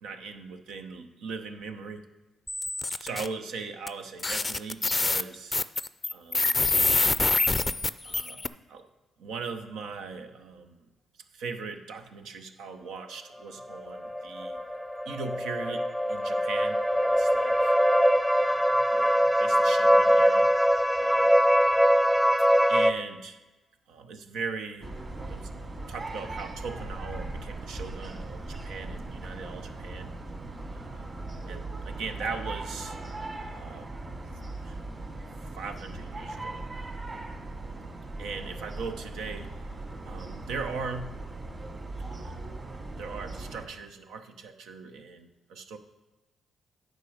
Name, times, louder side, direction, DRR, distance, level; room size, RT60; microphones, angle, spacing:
voice 1, 0.0-2.1 2.9-5.6 6.1-6.6 8.0-8.9 9.2-10.9 11.3-14.6 15.1-17.7 18.4-20.5 21.0-21.4 22.7-23.4 23.9-25.0 25.3-25.5 25.9-30.1 30.7-31.1 31.5-33.0 33.5-34.0 34.6-34.8 35.4-36.7 38.2-39.5 40.0-41.2 42.1-42.5 43.0-45.8, right 4 dB, 80° right, 6 dB, 0.8 m, -39 dB
sound 1, 2.5-3.3 3.9-4.0 4.2-8.5, left 3 dB, 25° left, 0.4 m, -25 dB
sound 2, 13.6-22.9, equal, 5° right, 0.7 m, -23 dB
sound 3, 24.8-43.6, right 2 dB, 35° right, 2.5 m, -39 dB
9.4 x 5.0 x 6.4 m, 1.1 s
supercardioid pair, 55°, 0 cm